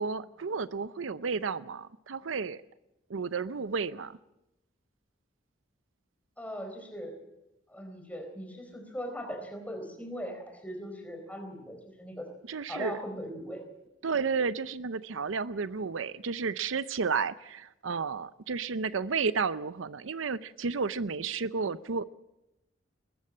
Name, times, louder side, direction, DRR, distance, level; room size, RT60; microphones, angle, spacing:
voice 1, 0.0-2.6 3.1-4.2 12.4-13.0 14.0-22.0, right 5 dB, 85° right, 0.6 m, -32 dB
voice 2, 6.4-7.1 7.7-12.3 12.7-13.6, equal, 5° left, 4.1 m, -39 dB
21.5 x 14.5 x 8.6 m
head